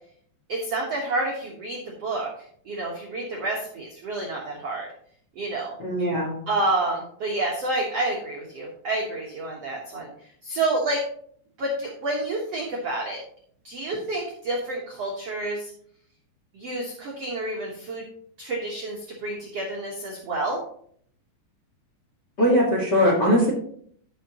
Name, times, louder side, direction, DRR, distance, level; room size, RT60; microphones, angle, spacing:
voice 1, 0.5-2.3 2.6-4.9 5.3-5.7 6.5-10.1 10.4-11.0 11.6-13.2 13.6-15.7 16.5-18.0 18.4-20.6, right 2 dB, 80° right, -2 dB, 1.4 m, -29 dB
voice 2, 5.8-6.4 22.4-23.5, equal, 50° left, -2 dB, 1.2 m, -20 dB
14.5 x 5.8 x 3.0 m, 0.62 s
omnidirectional pair, 5.1 m